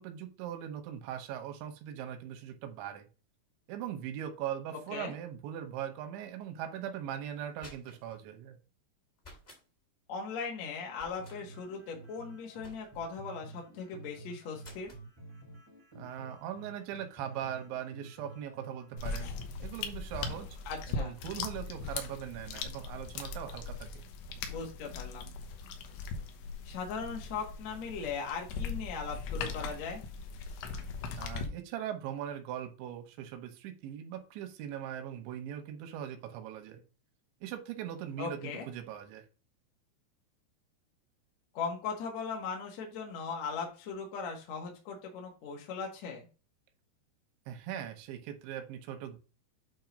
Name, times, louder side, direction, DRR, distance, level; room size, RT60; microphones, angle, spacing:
voice 1, 0.0-3.1 3.7-8.6 16.0-20.5 20.9-24.0 31.2-36.8 37.4-39.2 47.5-49.2, right 10 dB, 90° right, 6 dB, 3.2 m, -40 dB
sound 1, 7.3-8.2 9.2-9.6 10.9-11.4 12.6-13.1 14.6-15.1, left 1 dB, 30° left, 1.1 m, -53 dB
voice 2, 10.1-14.9 20.7-21.1 24.5-25.3 26.6-30.0 38.2-38.6 41.5-46.3, left 5 dB, 60° left, 0 dB, 1.8 m, -39 dB
sound 2, 11.2-19.2, right 2 dB, 10° left, 0.8 m, -51 dB
sound 3, 19.0-31.5, left 4 dB, 80° left, 3.2 m, -39 dB
8.7 x 3.0 x 5.1 m, 0.33 s
omnidirectional pair, 5.1 m